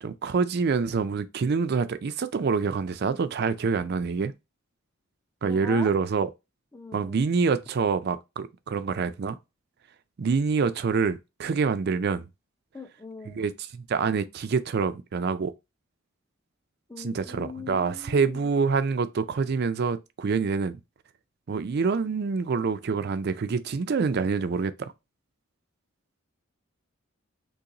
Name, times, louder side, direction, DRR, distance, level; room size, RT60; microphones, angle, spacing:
voice 1, 0.0-4.3 5.4-6.3 6.9-9.4 10.2-12.2 13.3-15.5 17.0-20.8 21.5-24.9, right 5 dB, 50° right, 0.4 m, -26 dB
voice 2, 5.5-5.9 6.7-7.3 12.7-13.4 16.9-18.5, left 3 dB, 15° left, 0.5 m, -41 dB
3.9 x 2.8 x 2.8 m
head